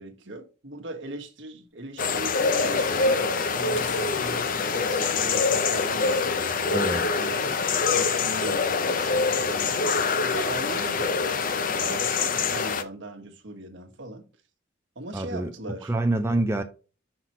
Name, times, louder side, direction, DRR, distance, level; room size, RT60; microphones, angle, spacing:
voice 1, 0.0-14.3 14.9-15.9, right 2 dB, 75° right, 1.4 m, -39 dB
sound 1, 1.8-1.9 2.1-3.4 3.8-6.4 6.8-6.9 7.1-7.2 8.4-8.9 9.2-10.0 11.0-11.6, left 3 dB, 80° left, 1.6 m, -45 dB
sound 2, 2.0-12.8, left 4 dB, 45° left, 0.6 m, -25 dB
voice 2, 6.7-7.0 15.1-15.5 15.8-16.6, right 2 dB, 15° right, 0.5 m, -26 dB
5.9 x 5.7 x 3.0 m
head